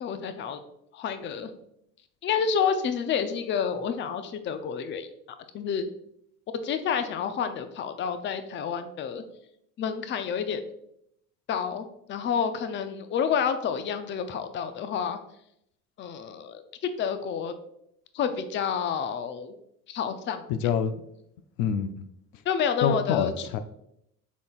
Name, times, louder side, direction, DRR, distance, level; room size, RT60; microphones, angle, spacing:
voice 1, 0.0-0.6 0.9-1.5 2.2-5.1 5.5-5.9 6.5-9.2 9.8-10.6 11.5-15.2 16.0-17.5 18.1-19.5 19.9-20.4 22.5-23.5, left 7 dB, 25° left, 10 dB, 0.5 m, -29 dB
voice 2, 20.5-21.0 21.6-21.9 22.8-23.6, left 7 dB, 70° left, 10 dB, 0.5 m, -26 dB
6.0 x 3.8 x 2.3 m, 0.76 s
hypercardioid pair, 80°, 43 cm